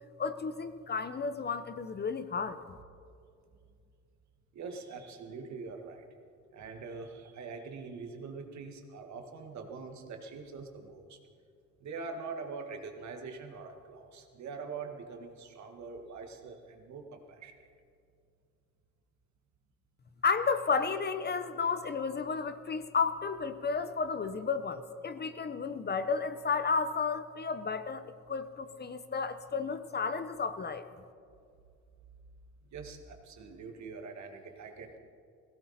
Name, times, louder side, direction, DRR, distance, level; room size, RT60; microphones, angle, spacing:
voice 1, 0.2-2.6 20.2-30.9, left 5 dB, 35° left, 12 dB, 0.8 m, -32 dB
voice 2, 4.5-6.1 6.5-11.2 11.8-17.5 32.7-35.0, right 4 dB, 65° right, 4 dB, 1.8 m, -44 dB
17.0 x 16.5 x 4.3 m, 2.4 s
cardioid pair, 90°, 30 cm